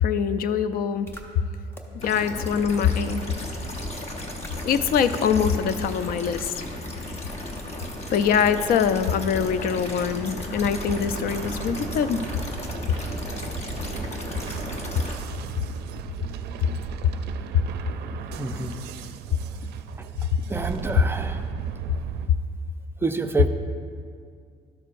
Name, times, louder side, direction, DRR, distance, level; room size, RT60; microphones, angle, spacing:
voice 1, 0.0-1.1 1.4-1.5 1.9-3.3 4.7-6.5 8.1-12.2 20.3-20.4, left 7 dB, 60° left, 12 dB, 0.4 m, -23 dB
sound 1, 1.1-1.2 1.7-1.8 2.4-2.5 3.1-3.2 3.7-3.9 4.4-4.5 5.1-5.3 5.7-5.8 6.4-6.5, equal, 15° left, 0.8 m, -41 dB
sound 2, 2.0-15.2, left 1 dB, 40° left, 1.0 m, -34 dB
sound 3, 10.6-22.3, right 9 dB, 75° right, 0.4 m, -36 dB
voice 2, 18.2-18.8 20.0-20.1 20.5-21.5 23.0-23.5, right 3 dB, 15° right, 7 dB, 0.4 m, -28 dB
12.5 x 6.3 x 2.5 m, 2.2 s
cardioid pair, 110°, 17 cm